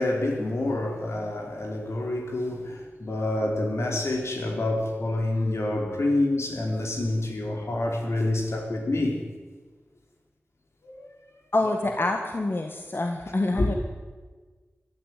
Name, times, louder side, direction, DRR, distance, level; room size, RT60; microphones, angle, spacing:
voice 1, 0.0-9.2 10.8-11.1 13.6-13.7, left 2 dB, 80° left, 4.5 m, -27 dB
voice 2, 11.5-13.7, left 2 dB, 55° left, 1.8 m, -26 dB
22.5 x 13.0 x 9.4 m
wide cardioid pair, 65°, 5 cm